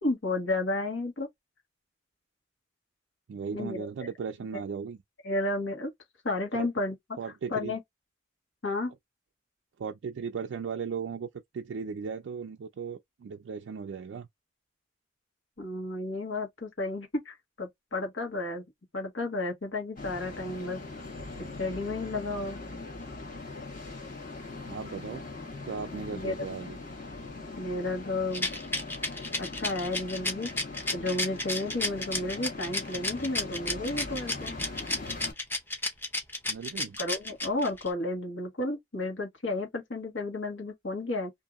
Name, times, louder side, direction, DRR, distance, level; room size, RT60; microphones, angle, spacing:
voice 1, 0.0-1.3 3.5-3.9 5.2-5.9 6.2-6.9 7.5-7.8 8.6-8.9 15.6-18.6 18.9-20.8 21.4-22.6 26.1-26.4 27.6-28.5 29.4-30.5 30.9-34.5 37.0-41.3, left 2 dB, 75° left, 1.4 m, -32 dB
voice 2, 3.3-5.0 6.5-6.7 7.2-7.8 9.8-11.3 11.5-14.3 24.7-25.3 25.6-26.8 36.5-37.0, right 6 dB, 70° right, 0.3 m, -36 dB
sound 1, 20.0-35.3, left 3 dB, 40° left, 1.2 m, -41 dB
Rattle, 28.3-37.9, left 2 dB, 10° left, 0.6 m, -32 dB
2.7 x 2.6 x 2.4 m
head